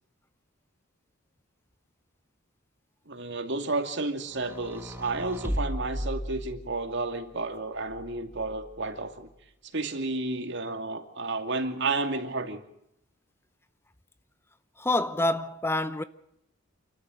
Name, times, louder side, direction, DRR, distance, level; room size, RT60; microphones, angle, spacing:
voice 1, 3.1-9.3 9.7-12.6, right 3 dB, 60° right, 2.6 m, -31 dB
sound 1, 4.3-7.0 7.9-8.8, equal, 10° right, 1.4 m, -36 dB
voice 2, 14.8-16.0, left 2 dB, 10° left, 0.7 m, -27 dB
28.0 x 13.5 x 8.0 m
head